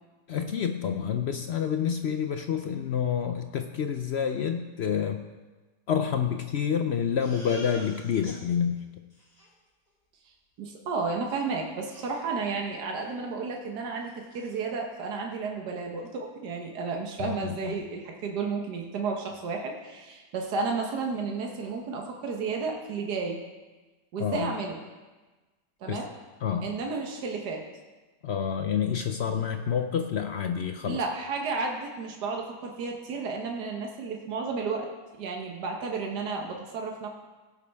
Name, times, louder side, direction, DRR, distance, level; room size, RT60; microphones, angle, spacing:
voice 1, 0.3-5.2 5.9-8.8 17.2-17.8 24.2-24.5 25.9-26.0 26.4-26.7 28.2-31.0, left 7 dB, 70° left, 7 dB, 0.6 m, -28 dB
Crying sobbing, 7.2-8.4 8.8-8.9 9.1-9.5 11.3-11.4 11.9-12.7 13.0-13.2 13.5-13.6 14.0-14.6, left 1 dB, 20° left, 3.0 m, -47 dB
voice 2, 10.6-23.4 24.1-24.8 25.8-26.1 26.6-27.6 30.9-34.9 35.2-37.1, right 4 dB, 80° right, 1 dB, 1.7 m, -32 dB
17.0 x 8.3 x 3.5 m, 1.2 s
omnidirectional pair, 1.7 m